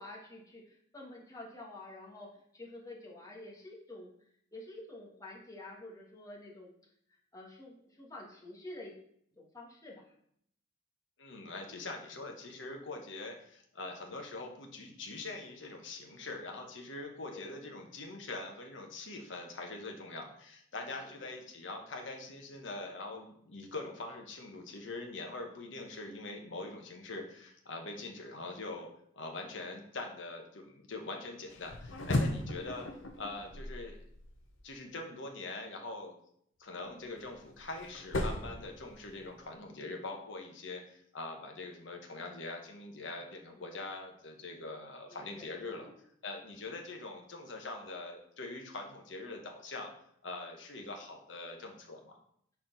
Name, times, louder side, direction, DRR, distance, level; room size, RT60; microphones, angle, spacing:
voice 1, 0.0-4.1 4.5-6.7 7.3-8.9 9.4-10.1 17.3-17.6 20.8-20.9 21.2-21.3 43.5-43.6 45.1-45.9, left 2 dB, 20° left, -3 dB, 1.4 m, -49 dB
voice 2, 11.2-28.9 29.1-32.9 33.2-34.0 34.6-36.1 36.6-45.9 46.2-49.9 50.2-52.2, left 2 dB, 70° left, 2 dB, 1.1 m, -43 dB
sound 1, 31.5-34.7 36.9-39.4, left 1 dB, 90° left, 0.8 m, -37 dB
5.8 x 4.3 x 3.9 m, 0.68 s
head